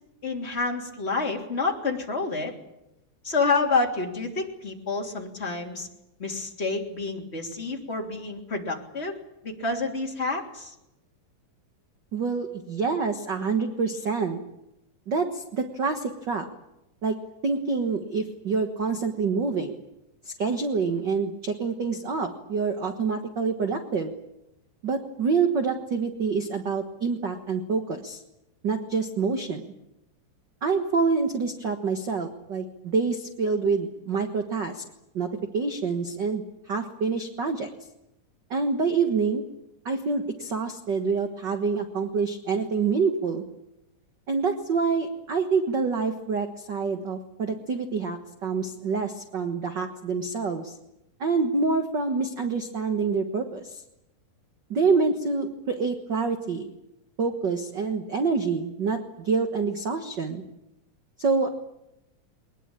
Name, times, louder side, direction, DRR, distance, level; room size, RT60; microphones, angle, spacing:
voice 1, 0.2-2.5 3.2-5.9 6.2-9.2 9.4-10.7, left 3 dB, 20° left, 1 dB, 3.2 m, -28 dB
voice 2, 12.1-14.4 15.1-16.5 17.0-17.2 17.4-19.8 20.2-24.1 24.8-28.2 28.6-29.7 30.6-34.8 35.1-35.3 35.5-37.7 38.5-39.4 39.8-43.4 44.3-50.8 51.2-53.8 54.7-56.7 57.2-60.4 61.2-61.5, right 4 dB, 50° right, 6 dB, 1.3 m, -27 dB
22.0 x 20.5 x 8.9 m, 0.89 s
omnidirectional pair, 4.0 m